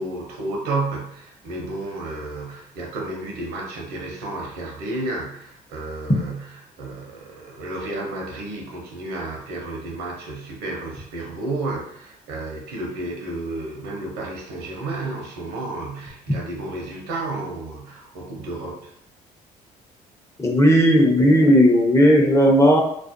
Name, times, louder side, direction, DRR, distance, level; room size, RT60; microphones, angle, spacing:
voice 1, 0.0-18.9, right 2 dB, 85° right, 0 dB, 0.7 m, -32 dB
voice 2, 20.4-22.8, equal, 15° left, 0 dB, 0.6 m, -15 dB
2.4 x 2.1 x 2.5 m, 0.70 s
supercardioid pair, 70°, 17 cm